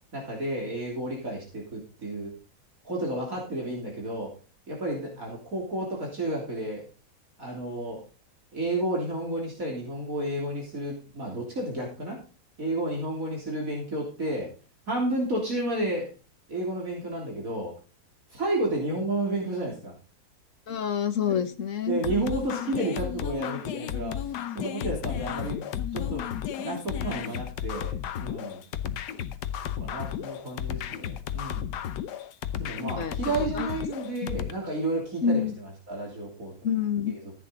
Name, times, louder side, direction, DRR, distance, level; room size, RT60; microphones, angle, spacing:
voice 1, 0.1-2.3 2.8-4.3 4.7-6.8 7.4-8.0 8.5-12.2 12.6-14.5 14.9-16.1 16.5-17.7 18.3-19.9 21.3-21.4 21.9-25.7 25.9-26.3 26.6-27.9 28.2-28.6 29.8-31.7 32.6-36.5 37.1-37.3, right 1 dB, 55° right, -2 dB, 3.8 m, -31 dB
voice 2, 20.7-22.0 33.0-33.1 33.5-33.7 35.2-35.5 36.6-37.1, left 7 dB, 55° left, 11 dB, 1.3 m, -27 dB
sound 1, 22.0-34.5, left 10 dB, 85° left, 1.4 m, -33 dB
14.0 x 8.8 x 4.0 m, 0.34 s
omnidirectional pair, 1.7 m